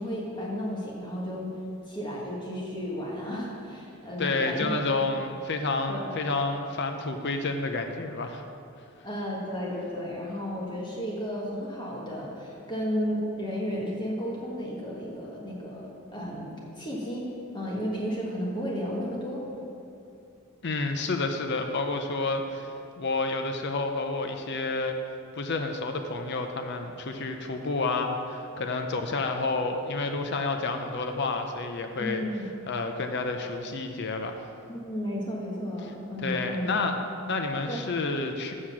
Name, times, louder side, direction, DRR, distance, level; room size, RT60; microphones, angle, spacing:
voice 1, 0.0-1.5 1.9-4.7 5.9-6.1 9.0-17.3 17.5-19.4 32.0-32.5 34.7-37.0 37.7-37.8, equal, 20° left, -4 dB, 1.4 m, -33 dB
voice 2, 4.2-8.4 20.6-24.9 25.3-32.2 32.7-34.4 36.2-37.0 37.3-38.5, left 3 dB, 50° left, 5 dB, 0.6 m, -30 dB
7.7 x 6.4 x 7.2 m, 2.6 s
head